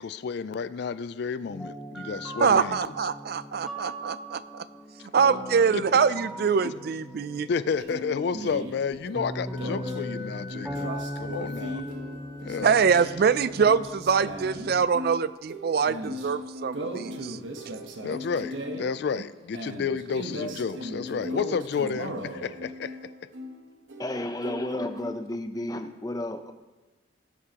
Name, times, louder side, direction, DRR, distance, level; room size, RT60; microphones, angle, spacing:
voice 1, 0.0-2.8 5.7-5.8 6.6-6.7 7.5-10.9 11.2-11.8 12.4-12.8 18.0-23.0, left 5 dB, 55° left, 15 dB, 0.3 m, -31 dB
sound 1, 1.5-14.8, equal, ahead, 1.2 m, -39 dB
voice 2, 2.4-4.6 5.1-7.5 12.6-17.4, right 6 dB, 50° right, 15 dB, 0.3 m, -24 dB
sound 2, 7.8-25.2, equal, 70° right, 1.2 m, -38 dB
Wind instrument woodwind instrument, 9.5-13.0, left 2 dB, 20° right, 3.1 m, -46 dB
voice 3, 24.0-26.5, left 1 dB, 20° left, 7 dB, 0.6 m, -32 dB
18.5 x 8.5 x 2.9 m, 1.2 s
head